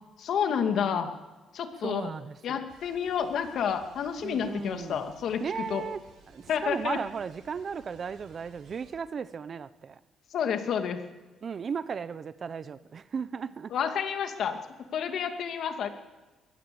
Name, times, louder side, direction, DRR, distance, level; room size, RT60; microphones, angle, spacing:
voice 1, 0.2-1.1 1.5-2.1 2.4-5.4 5.7-5.9 6.5-7.0 10.3-11.0 13.7-14.6 14.9-15.9, left 7 dB, 70° left, 2.4 m, -29 dB
voice 2, 1.8-2.6 4.2-5.0 5.4-6.0 6.3-10.0 11.4-13.7, right 6 dB, 45° right, 0.9 m, -36 dB
sound 1, 2.7-8.9, right 4 dB, 80° right, 7.9 m, -57 dB
22.5 x 17.5 x 7.0 m
cardioid pair, 90°, 0 cm